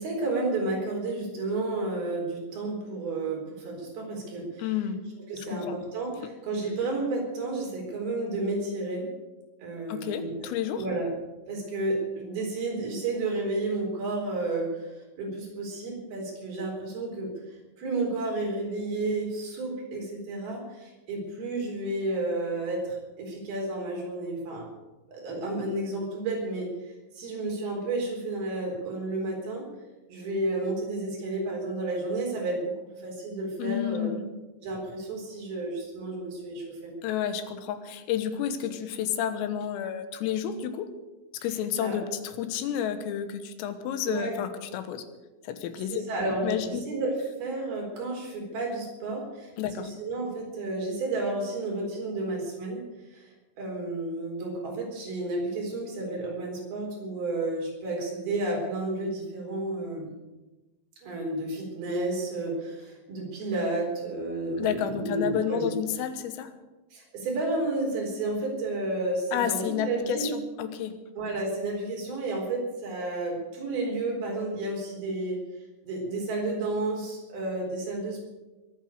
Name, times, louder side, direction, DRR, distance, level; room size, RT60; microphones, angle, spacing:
voice 1, 0.0-4.7 5.3-9.1 9.6-10.5 10.7-11.1 11.5-14.9 15.2-17.3 17.8-24.7 25.1-29.7 30.1-32.7 33.0-34.1 34.6-36.9 41.8-42.0 44.1-44.4 45.9-49.5 49.8-52.8 53.1-53.2 53.6-60.1 61.0-65.8 66.9-70.3 71.2-75.4 75.8-78.2, right 2 dB, 50° right, -1 dB, 5.7 m, -31 dB
voice 2, 4.6-5.0 5.5-5.8 9.9-10.8 33.6-34.2 37.0-40.9 41.4-45.1 45.5-46.0 46.4-46.8 49.6-49.9 64.6-66.5 69.3-70.9, left 9 dB, 90° left, 9 dB, 3.9 m, -30 dB
22.0 x 9.1 x 6.6 m, 1.1 s
omnidirectional pair, 5.8 m